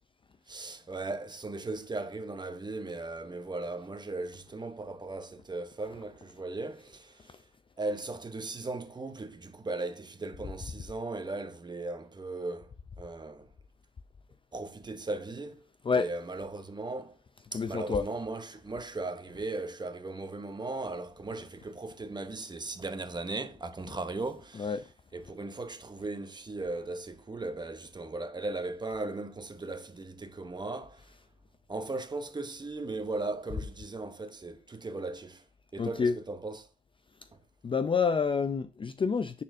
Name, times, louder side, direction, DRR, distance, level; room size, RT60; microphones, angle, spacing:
voice 1, 0.5-7.4 7.8-12.7 13.0-13.5 14.5-15.5 15.9-17.2 17.5-24.8 25.1-31.0 31.7-35.4 35.7-36.7, right 2 dB, 20° right, 0.9 m, -37 dB
voice 2, 17.5-18.1 24.6-24.8 35.8-36.1 37.6-39.4, left 5 dB, 25° left, 0.4 m, -28 dB
9.5 x 4.3 x 2.6 m
cardioid pair, 90°, 20 cm